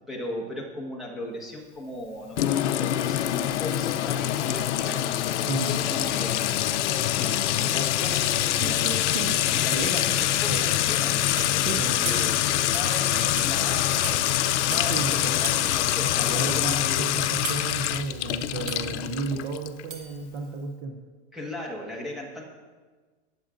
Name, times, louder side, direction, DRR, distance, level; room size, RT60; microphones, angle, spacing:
voice 1, 0.1-6.6 7.2-8.8 9.5-14.1 14.7-17.2 21.3-22.5, left 1 dB, ahead, -3 dB, 1.4 m, -37 dB
Sink (filling or washing) / Trickle dribble / Fill (with liquid), 2.4-19.8, left 12 dB, 85° left, 0.6 m, -25 dB
voice 2, 5.5-5.8 9.7-9.9 10.5-10.6 11.6-12.0 13.1-13.4 14.9-15.7 16.2-21.0, right 4 dB, 20° right, 3 dB, 0.3 m, -33 dB
sound 1, 8.6-9.5 11.4-11.6 12.1-12.3 12.7-12.9 13.4-13.5 14.0-14.2 14.7-14.9 15.4-15.6 16.2-16.3 17.4-17.8 18.7-18.9 19.9-20.1, right 5 dB, 55° right, 1.4 m, -35 dB
sound 2, 10.1-18.5, left 3 dB, 20° left, 2.9 m, -52 dB
19.0 x 7.3 x 2.5 m, 1.4 s
supercardioid pair, 160°, 34 cm